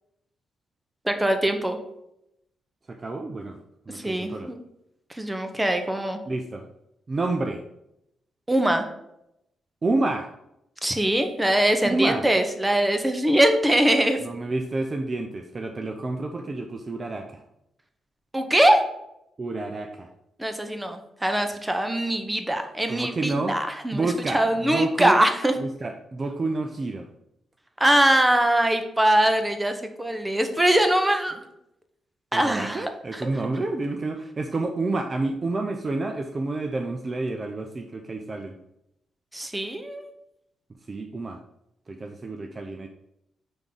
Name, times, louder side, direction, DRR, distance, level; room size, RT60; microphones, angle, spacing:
voice 1, 1.0-1.8 3.9-4.6 5.1-6.2 8.5-8.8 10.8-14.2 18.3-18.8 20.4-25.5 27.8-31.4 32.3-33.3 39.3-40.1, right 1 dB, 10° right, 6 dB, 0.8 m, -22 dB
voice 2, 2.9-3.6 3.9-4.5 6.3-6.7 7.1-7.6 9.8-10.3 11.8-12.2 14.2-17.4 19.4-20.1 22.9-23.6 23.9-25.2 25.6-27.1 32.3-38.6 40.9-41.4 41.9-42.9, right 2 dB, 35° right, 5 dB, 0.5 m, -29 dB
5.3 x 3.6 x 5.4 m, 0.82 s
cardioid pair, 100°, 0 cm